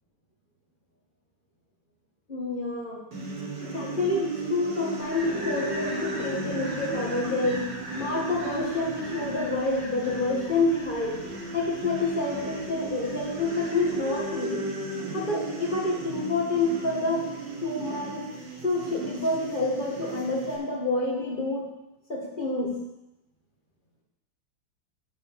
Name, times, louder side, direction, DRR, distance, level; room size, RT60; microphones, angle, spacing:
voice 1, 2.3-3.0 3.6-7.7 8.0-11.2 11.5-14.6 15.1-17.3 17.6-18.3 18.6-21.7 22.1-22.8, left 2 dB, 25° left, -3 dB, 1.9 m, -28 dB
sound 1, 3.1-20.6, right 2 dB, 65° right, 2.4 m, -36 dB
sound 2, 5.0-14.3, right 1 dB, 35° right, 1.9 m, -41 dB
9.5 x 5.1 x 7.4 m, 0.94 s
omnidirectional pair, 2.1 m